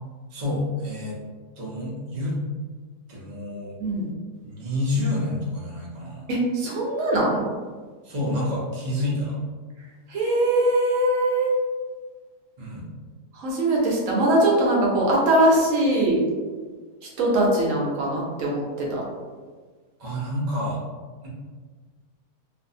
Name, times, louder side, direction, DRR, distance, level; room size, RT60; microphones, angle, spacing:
voice 1, 0.3-1.2 1.6-2.3 3.1-3.8 4.4-6.3 8.0-9.4 12.6-12.9 20.0-20.8 21.2-21.3, left 1 dB, 90° right, -5 dB, 0.3 m, -28 dB
voice 2, 6.3-7.4 10.1-11.5 13.3-16.2 17.2-19.0, right 1 dB, 65° right, -3 dB, 0.9 m, -21 dB
2.6 x 2.5 x 2.6 m, 1.5 s
omnidirectional pair, 1.8 m